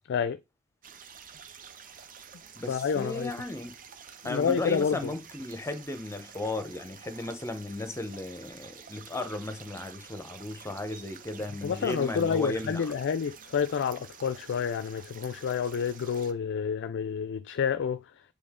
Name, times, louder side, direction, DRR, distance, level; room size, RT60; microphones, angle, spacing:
voice 1, 0.1-0.4 2.7-3.3 4.2-5.0 11.6-18.0, left 6 dB, 55° left, 0.4 m, -29 dB
sound 1, 0.8-16.3, right 7 dB, 40° right, 0.7 m, -49 dB
voice 2, 2.6-3.7 4.2-12.9, left 2 dB, 15° left, 0.8 m, -35 dB
7.7 x 3.5 x 3.6 m
head